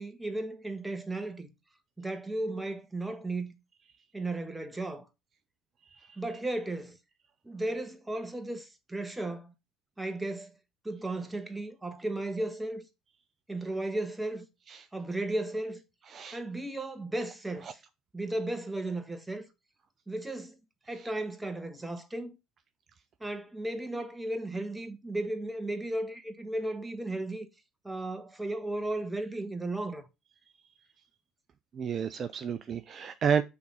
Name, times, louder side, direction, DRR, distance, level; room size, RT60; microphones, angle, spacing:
voice 1, 0.0-1.5 2.0-3.5 4.1-5.1 6.2-7.0 7.4-9.5 10.0-10.5 10.8-12.9 13.5-14.5 14.9-15.8 16.3-17.8 18.1-19.4 20.1-20.5 20.9-22.4 23.2-27.5 27.8-30.1, right 2 dB, 10° right, 1.3 m, -35 dB
voice 2, 31.7-33.4, right 7 dB, 45° right, 0.5 m, -30 dB
5.9 x 3.5 x 5.5 m
hypercardioid pair, 60°, 0 cm